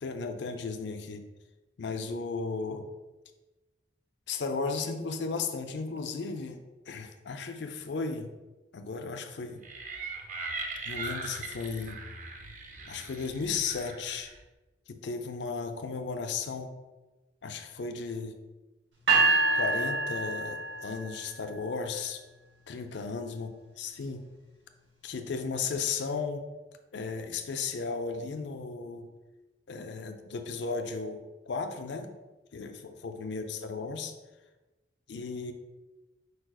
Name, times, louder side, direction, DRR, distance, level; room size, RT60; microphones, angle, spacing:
voice 1, 0.0-1.2 1.8-2.8 4.3-6.6 6.9-8.3 8.7-9.6 10.9-12.0 12.9-14.3 14.9-16.7 17.4-18.4 19.5-22.2 22.7-23.5 23.8-24.2 25.0-26.4 26.9-29.1 29.7-32.1 32.5-34.1 35.1-35.5, left 4 dB, 65° left, 6 dB, 0.5 m, -35 dB
sound 1, 9.6-14.4, right 3 dB, 40° right, 0.5 m, -40 dB
sound 2, 19.1-21.2, right 3 dB, 75° right, 1.3 m, -26 dB
4.7 x 2.4 x 4.7 m, 1.1 s
head